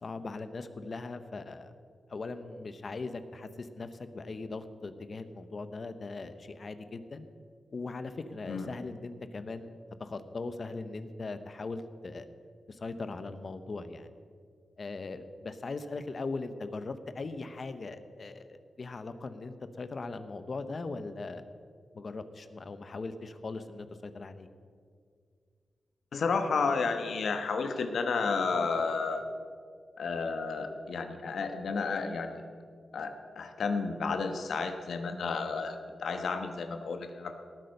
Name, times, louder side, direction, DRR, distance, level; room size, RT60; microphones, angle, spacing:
voice 1, 0.0-1.7 2.1-7.3 7.7-9.7 10.0-12.3 12.7-14.1 14.8-21.4 21.9-24.5, left 3 dB, 50° left, 11 dB, 0.9 m, -39 dB
voice 2, 26.1-29.3 30.0-32.4 32.9-37.3, left 4 dB, 80° left, 7 dB, 1.2 m, -32 dB
18.5 x 8.8 x 5.4 m, 2.1 s
wide cardioid pair, 95°, 0 cm